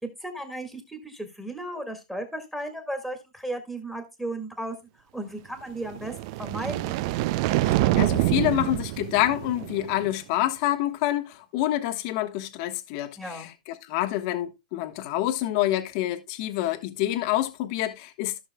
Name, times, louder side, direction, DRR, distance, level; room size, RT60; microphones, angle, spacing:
voice 1, 0.0-4.8 5.1-6.1 6.4-7.0 13.2-13.5, right 1 dB, 5° right, 1.8 m, -35 dB
sound 1, 5.9-10.1, right 17 dB, 40° right, 0.4 m, -26 dB
voice 2, 7.6-13.5 13.8-18.4, left 14 dB, 40° left, 1.1 m, -27 dB
14.5 x 6.3 x 2.2 m
hypercardioid pair, 150°, 4 cm